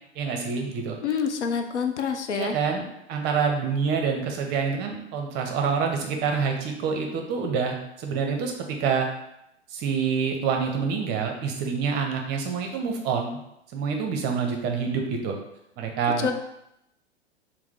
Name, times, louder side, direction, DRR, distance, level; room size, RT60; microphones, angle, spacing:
voice 1, 0.1-1.2 2.3-9.1 9.7-13.4 13.7-15.3 15.8-16.3, right 6 dB, 30° right, 2 dB, 0.6 m, -27 dB
voice 2, 1.0-2.5 16.2-16.3, left 6 dB, 80° left, 6 dB, 0.5 m, -27 dB
4.4 x 2.0 x 3.5 m, 0.80 s
figure-of-eight pair, 95°, 34 cm